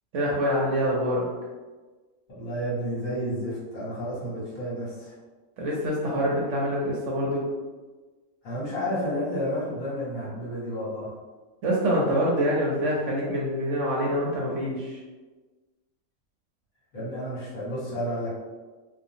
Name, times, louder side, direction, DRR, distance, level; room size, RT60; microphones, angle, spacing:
voice 1, 0.1-1.3 5.6-7.4 11.6-15.0, equal, 65° right, -4 dB, 0.8 m, -25 dB
voice 2, 2.3-5.1 8.4-11.1 16.9-18.3, equal, 65° left, -7 dB, 1.5 m, -31 dB
2.6 x 2.4 x 2.7 m, 1.3 s
omnidirectional pair, 1.6 m